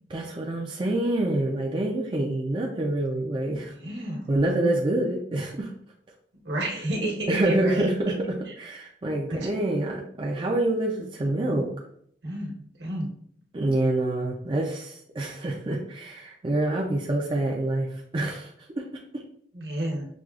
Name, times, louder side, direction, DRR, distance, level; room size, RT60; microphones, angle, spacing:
voice 1, 0.1-3.7 4.3-5.7 7.3-8.1 8.6-11.7 13.5-18.5 18.8-18.9 19.1-19.2, right 1 dB, 30° right, -2 dB, 0.4 m, -26 dB
voice 2, 3.8-4.3 6.4-8.1 9.3-9.5 12.2-13.1 19.5-20.1, right 1 dB, 70° right, -2 dB, 1.2 m, -30 dB
6.1 x 2.3 x 2.4 m, 0.65 s
head